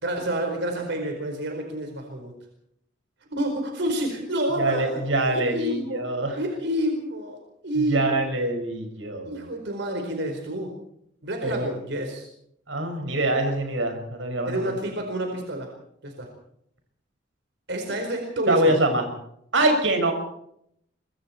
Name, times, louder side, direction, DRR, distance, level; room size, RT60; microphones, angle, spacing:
voice 1, 0.0-2.3 3.3-5.0 5.3-6.1 6.4-7.4 7.6-8.2 9.3-10.7 11.2-12.3 14.4-15.7 16.0-16.3 17.7-18.8, right 1 dB, 65° right, 3 dB, 4.5 m, -28 dB
voice 2, 4.6-6.4 7.9-9.5 11.4-11.8 12.7-14.7 18.5-19.1 19.5-20.1, right 2 dB, 90° right, 5 dB, 5.9 m, -24 dB
25.5 x 22.5 x 4.5 m, 0.72 s
head